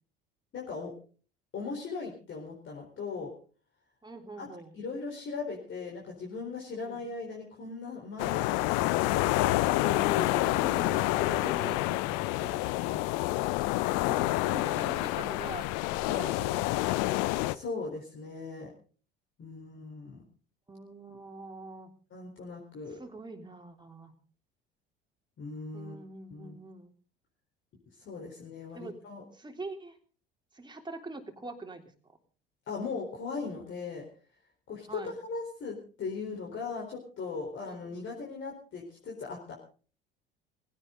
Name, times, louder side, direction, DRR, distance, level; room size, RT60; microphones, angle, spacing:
voice 1, 0.5-0.9 1.5-3.3 4.4-4.5 4.7-10.4 11.1-11.8 12.4-13.0 16.1-16.3 17.5-18.7 19.4-20.2 22.1-23.0 25.4-26.0 26.3-26.6 28.0-29.2 32.7-34.1 34.7-39.5, left 4 dB, 40° left, -1 dB, 4.3 m, -38 dB
voice 2, 4.0-4.7 6.9-7.0 10.4-11.1 11.4-12.3 13.8-15.7 16.2-16.9 20.7-21.9 22.9-24.1 25.7-26.9 28.7-29.0 29.3-30.0 30.5-31.8 34.9-35.1 37.6-37.8, right 2 dB, 15° right, 4 dB, 3.4 m, -44 dB
sound 1, 8.2-17.5, left 18 dB, 60° left, 0.8 m, -28 dB
20.0 x 16.5 x 3.9 m, 0.40 s
figure-of-eight pair, 65°, 29 cm